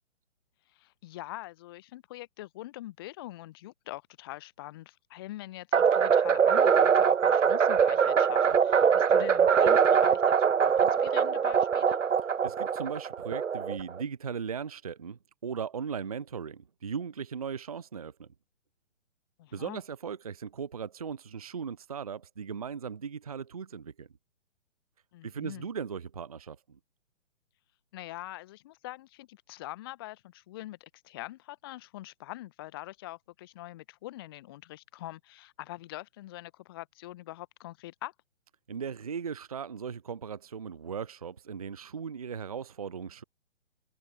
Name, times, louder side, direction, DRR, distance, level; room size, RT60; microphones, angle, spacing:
voice 1, 0.7-12.0 19.4-19.8 25.1-25.7 27.9-38.1, left 17 dB, 20° left, 0.9 m, -44 dB
sound 1, 5.7-14.0, right 7 dB, 75° right, 0.7 m, -23 dB
voice 2, 12.4-18.3 19.5-24.1 25.2-26.8 38.7-43.2, right 6 dB, 30° right, 0.5 m, -38 dB
figure-of-eight pair, 130°, 39 cm